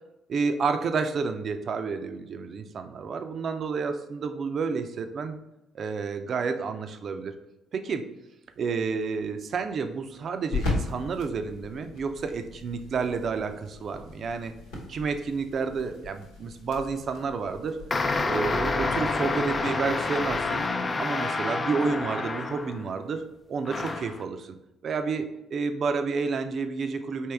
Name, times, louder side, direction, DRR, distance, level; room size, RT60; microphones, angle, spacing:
voice 1, 0.3-5.4 5.7-7.3 7.7-8.0 8.6-14.5 14.9-17.8 18.2-20.6 21.0-23.2 23.5-24.5 24.8-27.3, right 5 dB, 50° right, 8 dB, 0.5 m, -30 dB
sound 1, 8.5-20.6, left 3 dB, 80° left, 1.1 m, -39 dB
sound 2, 17.9-23.0 23.7-24.2, left 3 dB, 35° left, 0.4 m, -28 dB
4.5 x 3.0 x 3.4 m, 0.91 s
hypercardioid pair, 50°, 0 cm